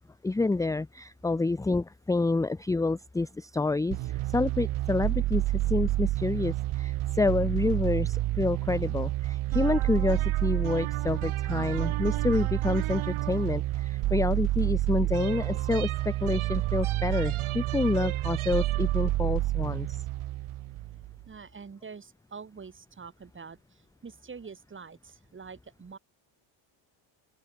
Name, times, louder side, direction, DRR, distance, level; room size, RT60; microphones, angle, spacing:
voice 1, 0.2-20.0, left 3 dB, 5° left, 0.5 m, -28 dB
sound 1, 3.9-21.2, right 16 dB, 75° right, 2.1 m, -29 dB
voice 2, 21.3-26.0, right 5 dB, 25° right, 3.1 m, -46 dB
open air
cardioid pair, 155°, 50 cm